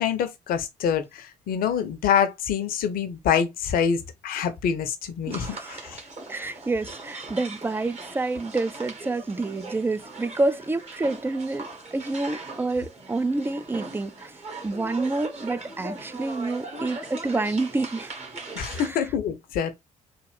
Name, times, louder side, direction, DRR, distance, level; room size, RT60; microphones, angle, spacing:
voice 1, 0.0-6.0 6.3-6.5 18.5-19.8, left 8 dB, 60° left, 0.8 m, -26 dB
voice 2, 5.3-5.8 6.3-14.4 14.6-18.1 18.7-19.0, right 2 dB, 15° right, 0.4 m, -28 dB
sound 1, 5.3-18.9, right 3 dB, 40° right, 1.4 m, -40 dB
3.7 x 2.4 x 3.4 m
figure-of-eight pair, 45°, 17 cm